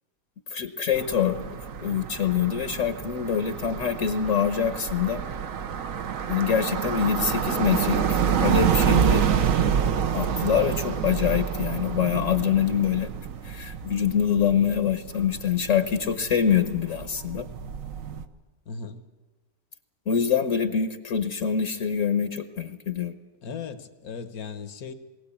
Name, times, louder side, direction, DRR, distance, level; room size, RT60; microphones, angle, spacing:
voice 1, 0.5-5.2 6.3-8.0 8.4-9.3 10.1-13.1 13.4-17.5 20.1-23.1, left 7 dB, 60° left, 9 dB, 1.3 m, -25 dB
sound 1, 0.9-18.2, right 7 dB, 65° right, 1.3 m, -28 dB
voice 2, 14.3-14.7 18.7-19.0 23.4-24.9, left 5 dB, 80° left, 9 dB, 1.7 m, -37 dB
21.0 x 17.0 x 8.5 m, 1.3 s
omnidirectional pair, 1.5 m